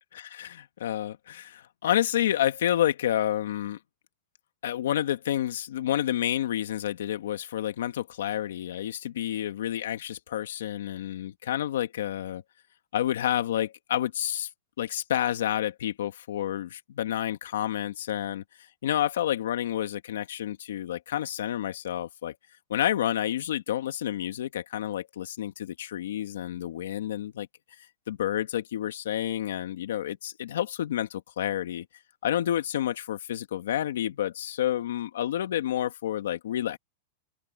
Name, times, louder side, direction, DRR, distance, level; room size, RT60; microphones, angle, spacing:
voice 1, 0.1-3.8 4.6-12.4 12.9-14.5 14.8-22.4 22.7-27.5 28.1-31.9 32.2-36.8, left 11 dB, 85° left, 1.8 m, -29 dB
open air
supercardioid pair, 150°, 0 cm